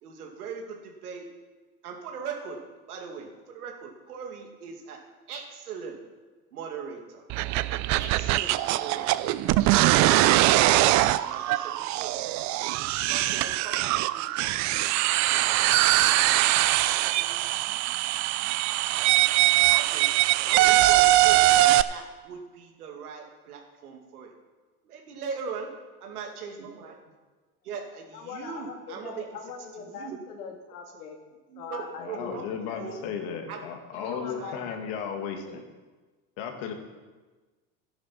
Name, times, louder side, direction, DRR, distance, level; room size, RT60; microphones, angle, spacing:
voice 1, 0.0-1.3 1.8-2.6 2.9-5.0 5.3-6.0 6.5-7.2 8.0-9.3 9.8-10.4 10.9-12.2 12.6-15.5 15.8-17.3 19.1-19.2 19.6-20.1 20.4-24.3 24.8-25.7 26.0-27.0 27.6-29.2 29.9-30.2 31.5-32.5 32.8-33.6 34.1-34.5, right 6 dB, 90° right, 2 dB, 2.3 m, -40 dB
sound 1, 7.3-21.8, right 16 dB, 40° right, 0.5 m, -22 dB
voice 2, 28.1-31.2 31.6-32.3 32.6-32.9 33.9-34.9 35.5-35.6, left 6 dB, 85° left, 3 dB, 2.2 m, -41 dB
voice 3, 32.0-35.6 36.4-36.7, left 7 dB, 60° left, 4 dB, 2.2 m, -35 dB
13.0 x 10.5 x 4.4 m, 1.3 s
supercardioid pair, 100°, 44 cm